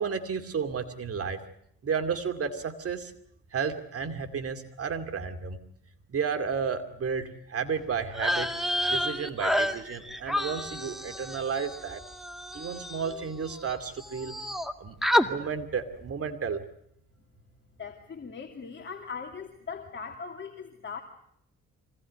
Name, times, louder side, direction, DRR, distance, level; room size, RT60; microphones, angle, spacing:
voice 1, 0.0-1.4 1.8-3.1 3.5-5.6 6.1-8.5 8.9-12.0 12.5-14.3 14.8-15.0 15.2-16.6, right 6 dB, 50° right, 8 dB, 2.5 m, -32 dB
sound 1, 8.1-13.7 14.0-14.7 15.0-15.3, left 1 dB, ahead, 1.9 m, -30 dB
voice 2, 17.8-21.0, left 5 dB, 40° left, 3 dB, 2.7 m, -40 dB
25.0 x 18.0 x 9.5 m, 0.71 s
cardioid pair, 90°, 30 cm